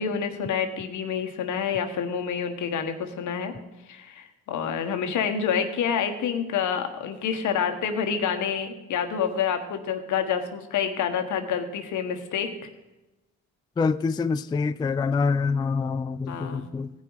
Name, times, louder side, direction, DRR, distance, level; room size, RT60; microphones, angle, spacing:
voice 1, 0.0-3.5 3.9-12.7 16.3-16.7, left 7 dB, 80° left, 1.4 m, -28 dB
voice 2, 13.8-16.9, left 4 dB, 15° left, 0.3 m, -25 dB
17.0 x 5.7 x 4.7 m
cardioid pair, 90°, 30 cm